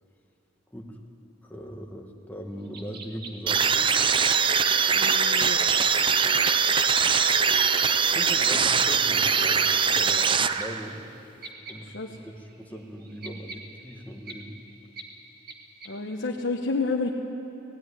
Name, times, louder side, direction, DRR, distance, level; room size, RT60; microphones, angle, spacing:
voice 1, 1.4-3.9 8.1-11.0 11.7-14.6, equal, 10° left, 1 dB, 1.7 m, -40 dB
sound 1, 2.7-9.0 10.3-10.4 10.6-10.7 11.4-11.7 12.2-12.3 12.5-14.3 15.0-15.1 15.5-15.6 15.8-15.9, right 4 dB, 55° right, 2.0 m, -40 dB
sound 2, 3.5-11.0, right 6 dB, 25° right, 0.5 m, -22 dB
voice 2, 4.9-5.6 11.8-12.2 15.8-17.1, left 3 dB, 70° left, -1 dB, 1.2 m, -30 dB
18.0 x 17.0 x 9.8 m, 2.9 s
head